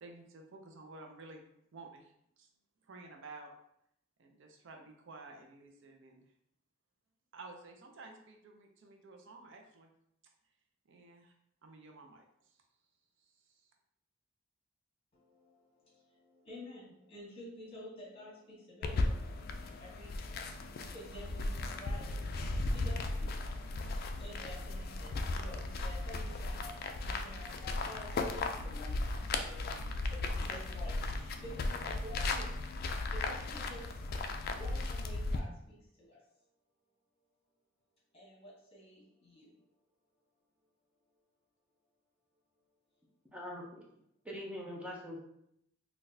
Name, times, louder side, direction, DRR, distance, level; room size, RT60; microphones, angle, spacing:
voice 1, 0.0-1.5 1.7-2.5 2.8-3.5 4.2-6.3 7.3-9.9 10.9-11.3 11.6-12.6 13.2-13.7, right 3 dB, 65° right, 3 dB, 0.5 m, -53 dB
voice 2, 15.1-32.5 33.1-34.0 34.5-36.2 38.1-39.6, left 1 dB, 30° left, -5 dB, 1.4 m, -51 dB
sound 1, 18.8-35.4, left 2 dB, 50° left, 0.3 m, -36 dB
voice 3, 43.3-43.7 44.2-45.2, left 1 dB, 5° right, -3 dB, 0.6 m, -42 dB
3.8 x 2.3 x 2.6 m, 0.76 s
head